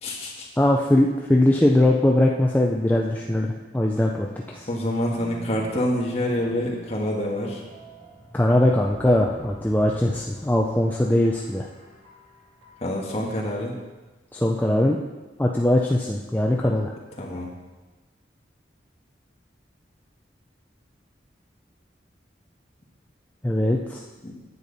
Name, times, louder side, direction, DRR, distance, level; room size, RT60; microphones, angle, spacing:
voice 1, 0.0-0.5 4.7-7.6 12.8-13.8 17.2-17.5 24.2-24.3, left 1 dB, 35° left, -2 dB, 1.7 m, -27 dB
voice 2, 0.6-4.7 8.3-11.7 14.3-15.0 15.4-16.9 23.4-24.0, left 1 dB, 10° left, -1 dB, 0.4 m, -21 dB
sound 1, 2.8-13.3, equal, 35° right, 1.6 m, -46 dB
9.5 x 8.4 x 4.1 m, 1.2 s
head